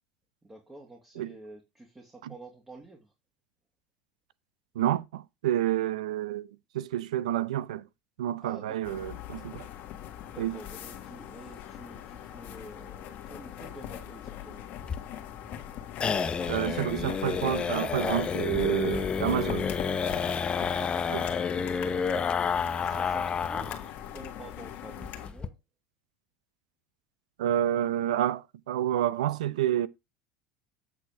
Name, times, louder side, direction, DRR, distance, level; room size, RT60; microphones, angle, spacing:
voice 1, 0.4-3.1 8.4-9.0 10.3-14.7 18.0-18.3 19.6-20.0 20.5-21.4 22.1-25.6, right 2 dB, 15° right, 2.3 m, -49 dB
voice 2, 4.7-6.5 6.7-7.9 8.2-9.7 10.4-10.6 16.5-19.7 21.1-21.2 27.4-29.9, right 12 dB, 90° right, 0.6 m, -29 dB
sound 1, 8.8-25.3, left 11 dB, 55° left, 1.6 m, -42 dB
sound 2, 14.8-23.9 24.2-24.3 24.6-24.7 25.0-25.5, left 6 dB, 30° left, 0.8 m, -30 dB
8.3 x 4.3 x 4.8 m
supercardioid pair, 100°, 4 cm